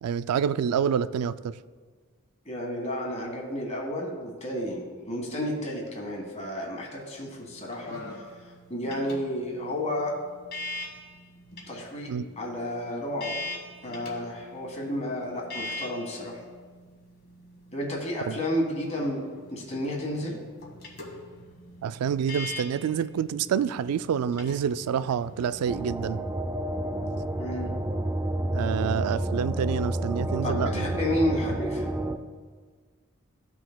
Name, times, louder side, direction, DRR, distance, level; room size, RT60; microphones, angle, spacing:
voice 1, 0.0-1.5 12.1-12.3 18.3-18.4 21.8-26.2 28.5-31.0, right 8 dB, 90° right, 15 dB, 0.3 m, -27 dB
voice 2, 2.4-10.1 11.7-12.1 12.4-13.4 13.8-16.4 17.7-19.2 19.5-20.4 27.4-27.7 30.4-31.9, left 1 dB, 30° left, 0 dB, 1.6 m, -31 dB
sound 1, 7.2-25.8, left 1 dB, 45° left, 1.5 m, -43 dB
sound 2, 25.7-32.2, right 1 dB, 10° right, 0.3 m, -30 dB
14.5 x 6.0 x 2.2 m, 1.5 s
head